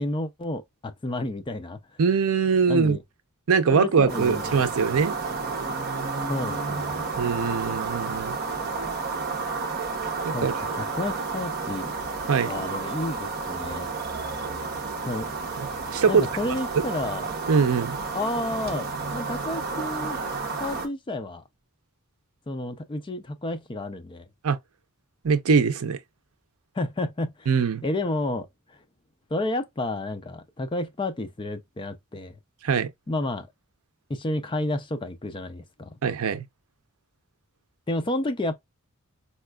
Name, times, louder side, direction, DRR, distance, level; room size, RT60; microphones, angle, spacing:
voice 1, 0.0-1.8 2.7-3.0 3.7-5.0 6.3-7.1 10.3-11.9 12.5-13.9 15.0-15.3 16.1-17.3 18.1-20.2 20.6-21.4 22.5-24.3 26.8-27.5 27.8-28.8 29.3-32.4 33.1-33.5 34.1-35.9 37.9-38.5, left 2 dB, 20° left, 0.4 m, -31 dB
voice 2, 2.0-3.0 3.5-5.1 7.2-8.4 10.2-10.5 12.3-12.5 15.9-16.3 17.5-18.0 24.4-24.6 25.2-26.0 27.5-27.8 32.6-32.9 36.0-36.5, right 5 dB, 75° right, 0.5 m, -22 dB
sound 1, 4.1-20.9, right 4 dB, 45° right, 0.8 m, -31 dB
4.2 x 2.3 x 2.2 m
head